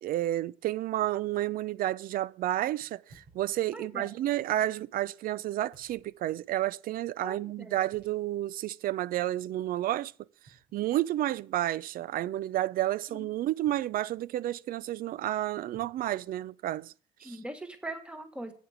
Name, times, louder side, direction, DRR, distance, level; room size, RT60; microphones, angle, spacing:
voice 1, 0.0-10.1 10.7-16.9 17.2-17.4, right 14 dB, 60° right, 0.4 m, -31 dB
sound 1, 3.1-4.1 5.7-6.5 7.9-8.6 9.0-9.1 10.5-11.4 13.7-14.4 15.7-16.8, right 3 dB, 90° right, 6.2 m, -61 dB
voice 2, 3.7-4.1 7.2-7.8 13.1-13.3 17.2-18.5, right 1 dB, 5° right, 1.5 m, -41 dB
8.4 x 7.8 x 5.0 m
cardioid pair, 110°, 17 cm